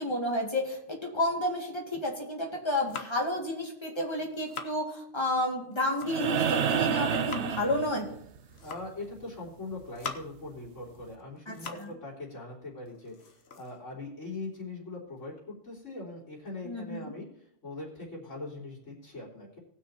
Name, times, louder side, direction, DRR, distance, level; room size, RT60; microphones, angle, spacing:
voice 1, 0.0-8.1 11.5-11.9 16.6-17.1, left 1 dB, 20° left, -1 dB, 2.3 m, -31 dB
sound 1, 2.5-3.4 4.0-4.8 5.6-6.4 6.8-7.6 8.4-9.0 9.6-10.5 10.9-12.0 12.3-12.4 12.9-14.6, left 5 dB, 60° left, 1.2 m, -44 dB
sound 2, 6.1-8.4 10.2-10.3, right 7 dB, 65° right, 1.0 m, -29 dB
voice 2, 8.6-17.3 17.6-19.6, left 2 dB, 80° left, -5 dB, 3.8 m, -41 dB
19.0 x 6.4 x 4.3 m, 0.71 s
omnidirectional pair, 1.3 m